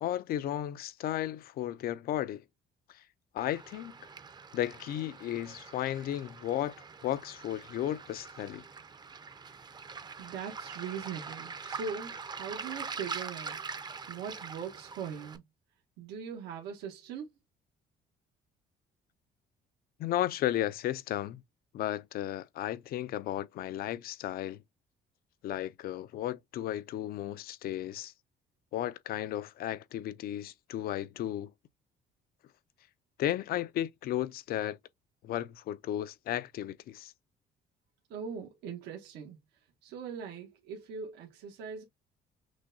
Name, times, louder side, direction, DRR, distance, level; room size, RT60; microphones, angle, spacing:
voice 1, 0.0-2.4 2.9-3.0 3.3-3.9 4.5-6.7 7.0-8.6 20.0-21.4 21.7-24.6 25.4-28.1 28.7-31.5 33.2-34.8 35.2-37.1, left 12 dB, 60° left, 0.5 m, -34 dB
Waves surf, 3.4-15.4, right 5 dB, 25° right, 0.6 m, -44 dB
voice 2, 10.2-13.6 14.1-15.4 16.0-17.3 38.1-39.4 39.8-41.8, right 6 dB, 85° right, 1.2 m, -40 dB
6.2 x 2.2 x 2.6 m
cardioid pair, 110°, 17 cm